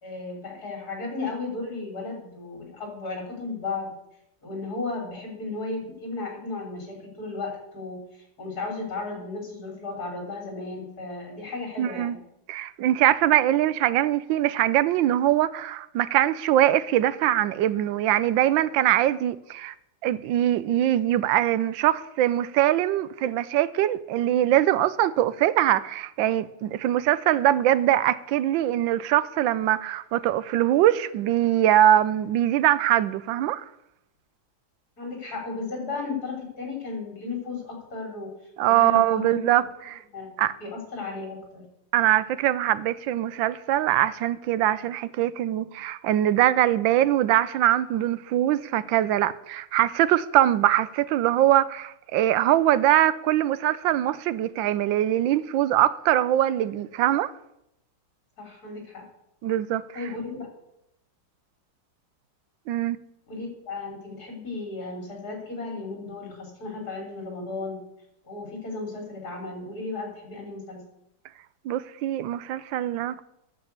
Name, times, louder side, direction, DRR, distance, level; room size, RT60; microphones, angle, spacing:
voice 1, 0.0-3.9 4.4-12.2 35.0-38.3 38.7-39.4 40.1-41.6 58.4-59.0 59.9-60.5 63.3-67.8 68.2-70.8, left 3 dB, 55° left, 3.9 m, -34 dB
voice 2, 11.8-12.2 12.5-19.7 20.0-33.7 38.6-40.0 40.4-40.5 41.9-57.3 59.4-59.9 62.7-63.0 71.6-73.2, right 12 dB, 85° right, 1.3 m, -22 dB
9.8 x 7.0 x 8.1 m
omnidirectional pair, 2.0 m